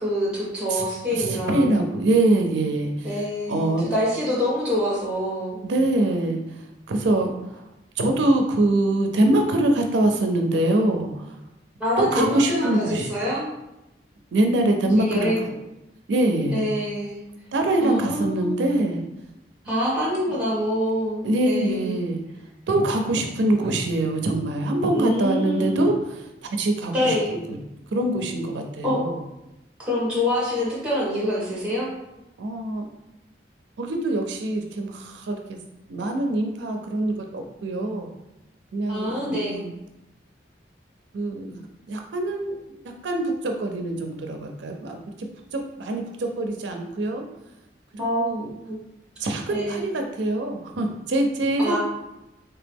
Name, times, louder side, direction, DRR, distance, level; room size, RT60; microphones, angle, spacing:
voice 1, 0.0-1.8 3.0-5.6 11.8-13.5 15.0-15.5 16.5-17.2 17.8-18.6 19.6-22.0 24.9-25.8 26.9-27.3 28.8-29.0 29.9-31.9 38.9-39.7 48.0-48.3 48.6-48.8 49.5-49.9 51.6-51.8, equal, 5° right, -6 dB, 1.4 m, -25 dB
voice 2, 1.2-3.8 5.6-7.6 8.0-11.4 12.0-13.1 14.3-15.3 16.1-16.7 17.5-19.0 21.2-22.2 22.7-27.6 27.9-29.2 32.4-32.9 33.8-35.4 35.9-38.1 38.7-39.7 41.1-41.6 41.9-42.5 43.0-47.2 47.9-48.5 49.2-51.8, right 1 dB, 80° right, 3 dB, 0.4 m, -24 dB
3.3 x 2.9 x 3.4 m, 0.92 s
head